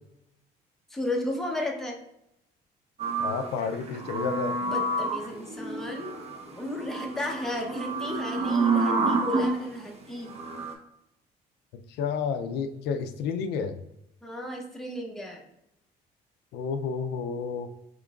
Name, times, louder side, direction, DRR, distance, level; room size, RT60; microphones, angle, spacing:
voice 1, 0.9-2.0 4.6-6.2 6.6-10.6 14.2-15.4, left 1 dB, ahead, 0 dB, 0.7 m, -34 dB
sound 1, 3.0-9.6 10.3-10.7, right 3 dB, 40° right, 0.6 m, -29 dB
voice 2, 3.2-4.6 11.7-13.8 16.5-17.7, left 5 dB, 80° left, 8 dB, 0.4 m, -31 dB
3.6 x 3.6 x 2.3 m, 0.83 s
cardioid pair, 110°, 17 cm